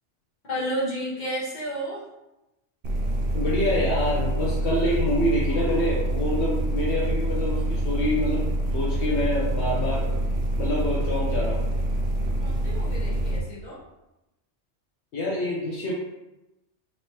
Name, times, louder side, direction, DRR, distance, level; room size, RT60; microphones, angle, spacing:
voice 1, 0.5-2.0 12.4-13.8, equal, 40° left, -6 dB, 1.3 m, -31 dB
sound 1, 2.8-13.4, right 1 dB, 60° right, 0.8 m, -26 dB
voice 2, 3.3-10.1 10.6-11.6 15.1-15.9, left 1 dB, 70° left, -5 dB, 1.0 m, -26 dB
4.3 x 3.0 x 2.9 m, 0.96 s
omnidirectional pair, 1.2 m